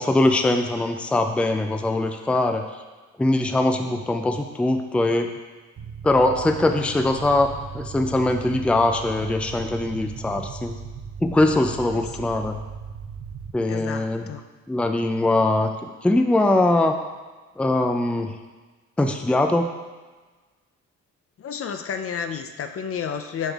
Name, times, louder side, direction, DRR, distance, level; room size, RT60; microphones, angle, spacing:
voice 1, 0.0-2.6 3.2-5.3 6.0-10.8 11.2-12.6 13.5-14.3 14.7-15.7 16.0-16.9 17.6-18.3 19.0-19.7, left 2 dB, 5° left, 5 dB, 0.4 m, -21 dB
sound 1, 5.8-13.5, right 6 dB, 50° right, 0.7 m, -37 dB
voice 2, 11.9-12.3 13.6-14.4 21.4-23.5, left 7 dB, 50° left, 7 dB, 0.6 m, -31 dB
7.2 x 5.4 x 3.6 m, 1.3 s
cardioid pair, 90°, 30 cm